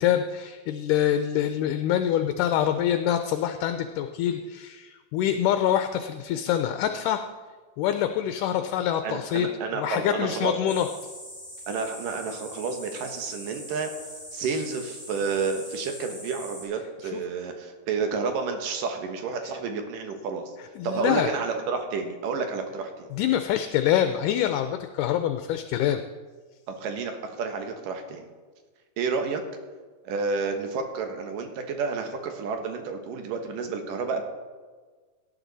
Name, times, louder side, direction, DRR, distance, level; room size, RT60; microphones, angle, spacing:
voice 1, 0.0-7.2 7.8-9.5 9.8-10.9 17.1-17.2 20.8-21.3 23.1-26.0, left 10 dB, 80° left, 8 dB, 2.1 m, -25 dB
voice 2, 9.0-10.7 11.7-13.9 14.3-20.5 20.8-23.1 26.7-28.3 29.0-29.4 30.0-34.2, right 4 dB, 75° right, 5 dB, 2.8 m, -30 dB
sound 1, 10.7-16.6, left 1 dB, 5° right, 3.6 m, -42 dB
17.5 x 10.0 x 4.0 m, 1.4 s
omnidirectional pair, 4.0 m